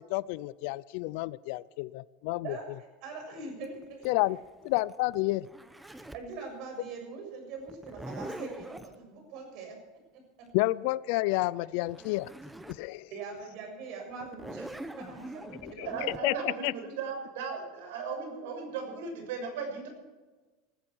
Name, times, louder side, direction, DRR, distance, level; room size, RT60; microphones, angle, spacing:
voice 1, 0.0-2.5 4.0-4.4 4.6-5.5 10.5-12.3 12.7-13.1 15.6-15.9 16.2-16.3 16.6-16.7, left 20 dB, 60° left, 20 dB, 0.5 m, -30 dB
voice 2, 2.4-4.1 6.1-9.8 10.1-10.2 13.1-15.9, right 4 dB, 50° right, 3 dB, 6.9 m, -42 dB
Zipper (clothing), 3.6-6.3 7.7-8.9 11.5-11.6 11.9-12.9 13.3-13.4 14.2-16.2, right 1 dB, 5° right, 0.9 m, -43 dB
voice 3, 15.8-19.9, right 5 dB, 80° right, 4 dB, 6.7 m, -36 dB
19.5 x 14.0 x 4.7 m, 1.2 s
supercardioid pair, 155°, 0 cm